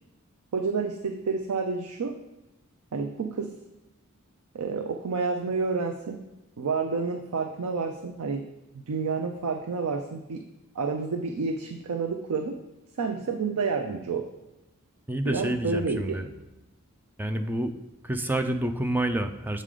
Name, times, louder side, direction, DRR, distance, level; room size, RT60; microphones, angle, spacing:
voice 1, 0.5-2.1 2.9-3.5 4.5-6.2 6.6-8.4 8.7-10.4 10.7-12.6 13.0-14.3 15.2-16.2, right 4 dB, 85° right, 5 dB, 0.5 m, -29 dB
voice 2, 15.1-16.3 17.2-17.7 18.0-19.6, right 1 dB, 10° right, 7 dB, 0.3 m, -28 dB
7.5 x 3.7 x 4.8 m, 0.98 s
head